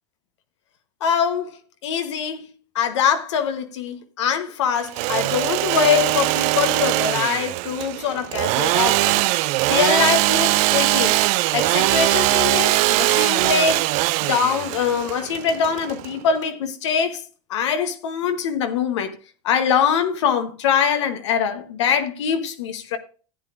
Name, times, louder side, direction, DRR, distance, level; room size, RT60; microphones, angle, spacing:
voice 1, 1.0-1.6 1.8-2.5 2.7-11.2 11.5-13.9 14.3-17.2 17.5-19.1 19.4-23.0, left 7 dB, 80° left, 1.1 m, -23 dB
Engine / Sawing, 4.8-16.4, right 19 dB, 55° right, 0.4 m, -21 dB
14.5 x 8.4 x 2.5 m
hypercardioid pair, 95°, 15 cm